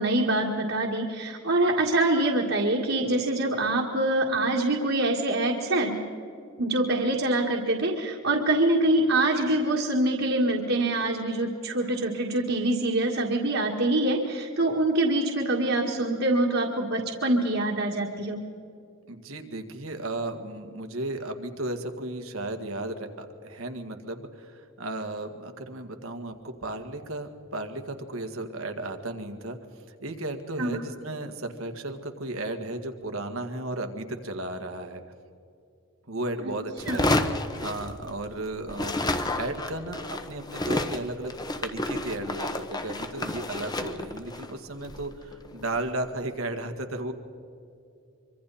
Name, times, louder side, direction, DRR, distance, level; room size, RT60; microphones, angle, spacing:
voice 1, 0.0-6.0 6.6-18.4 30.6-30.8 36.9-37.0, right 2 dB, 65° right, -2 dB, 2.1 m, -25 dB
voice 2, 19.1-29.6 30.0-35.0 36.1-37.1 37.6-41.3 41.6-47.1, right 2 dB, 85° right, 6 dB, 1.9 m, -34 dB
sound 1, 36.8-38.4 38.7-45.9, left 2 dB, 20° left, 1.0 m, -31 dB
25.0 x 25.0 x 4.3 m, 2.6 s
head